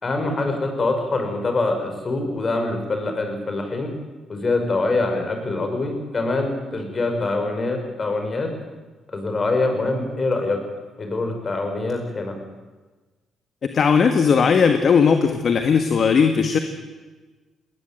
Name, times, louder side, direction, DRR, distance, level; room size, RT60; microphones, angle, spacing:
voice 1, 0.0-3.9 4.3-8.5 9.1-10.6 11.0-12.3, left 2 dB, 35° left, 5 dB, 5.8 m, -24 dB
voice 2, 13.7-16.6, left 6 dB, 50° left, 7 dB, 1.7 m, -17 dB
20.0 x 19.5 x 9.1 m, 1.3 s
cardioid pair, 90°, 0 cm